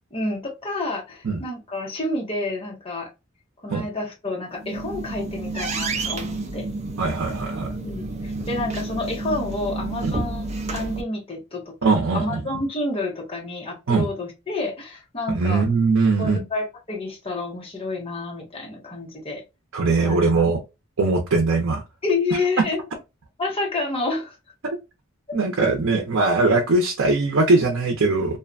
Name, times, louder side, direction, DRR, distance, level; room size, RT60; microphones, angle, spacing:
voice 1, 0.1-3.1 3.6-6.7 7.8-15.6 16.2-19.4 20.0-20.2 22.0-22.8 23.4-24.4, left 2 dB, 30° left, 0.9 m, -29 dB
sound 1, 4.5-11.0, right 2 dB, 35° right, 0.5 m, -30 dB
voice 2, 7.0-7.7 10.0-10.1 11.8-12.4 13.9-14.1 15.3-16.4 19.7-20.6 21.0-21.8 24.6-24.8 25.3-28.4, right 3 dB, 80° right, 0.6 m, -20 dB
2.6 x 2.2 x 2.5 m
head